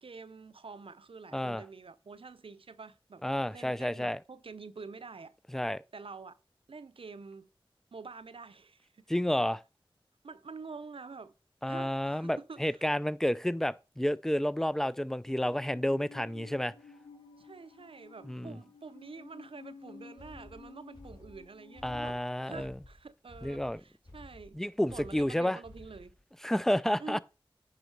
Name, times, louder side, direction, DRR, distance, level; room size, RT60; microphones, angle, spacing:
voice 1, 0.0-3.2 3.5-5.3 5.9-6.4 6.7-7.5 7.9-8.9 10.2-11.3 11.6-12.9 17.4-22.2 22.4-24.6 24.9-26.1 27.0-27.2, right 4 dB, 70° right, 0.6 m, -47 dB
voice 2, 1.3-1.6 3.2-4.2 5.5-5.8 9.1-9.6 11.6-16.7 18.2-18.6 21.8-22.8 23.4-23.8 24.5-25.6 26.4-27.2, equal, 5° left, 0.4 m, -30 dB
Musical instrument, 15.2-22.1, left 4 dB, 70° left, 1.6 m, -53 dB
sound 1, 20.2-26.2, left 2 dB, 55° left, 3.6 m, -53 dB
10.0 x 4.0 x 4.7 m
cardioid pair, 45°, 10 cm